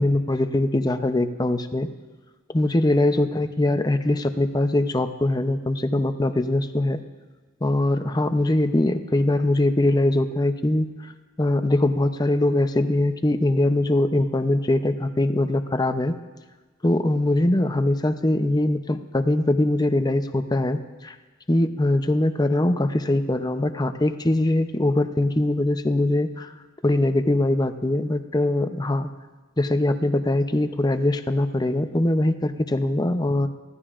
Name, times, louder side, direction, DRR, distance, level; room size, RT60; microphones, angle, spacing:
voice 1, 0.0-1.9 2.5-7.0 7.6-11.1 11.4-16.1 16.8-21.1 21.5-26.5 26.8-29.1 29.6-33.5, left 1 dB, 20° left, 8 dB, 0.6 m, -22 dB
24.0 x 15.5 x 2.5 m, 1.3 s
head